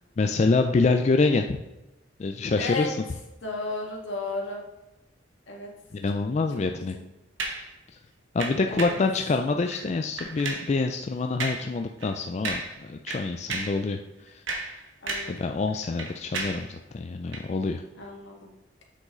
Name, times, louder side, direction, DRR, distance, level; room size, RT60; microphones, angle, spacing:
voice 1, 0.2-1.6 2.2-2.9 5.9-7.0 8.3-14.0 14.3-14.4 15.3-17.8, left 3 dB, 35° left, 5 dB, 0.3 m, -26 dB
voice 2, 2.6-2.9 3.4-4.6 5.5-5.7 6.5-6.6 6.9-7.0 8.7-9.0 15.0-15.4 18.0-18.5, left 3 dB, 80° left, -1 dB, 1.9 m, -33 dB
sound 1, 7.4-7.7 8.4-9.1 9.6-9.9 10.2-10.7 11.4-11.7 12.0-12.1 12.4-12.8 13.1-13.8 14.3-15.4 15.7-16.7 17.3-17.5, right 3 dB, 85° right, 1.4 m, -33 dB
7.7 x 6.3 x 3.7 m, 0.99 s
head